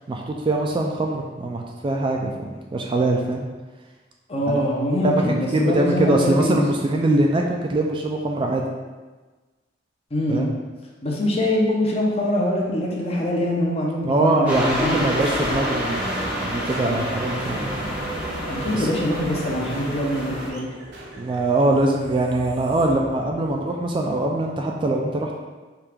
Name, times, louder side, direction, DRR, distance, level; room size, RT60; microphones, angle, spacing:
voice 1, 0.1-3.5 4.5-4.6 5.0-8.7 10.3-10.5 14.0-18.0 18.7-18.9 21.2-25.3, right 2 dB, 25° right, 1 dB, 0.3 m, -23 dB
voice 2, 4.3-6.6 10.1-10.5 11.0-15.1 18.5-20.7, left 1 dB, 35° left, -2 dB, 0.7 m, -23 dB
sound 1, 14.5-20.5, equal, 5° right, 0.8 m, -28 dB
sound 2, 15.4-23.6, right 1 dB, 60° right, 0.7 m, -40 dB
4.6 x 2.4 x 3.3 m, 1.3 s
head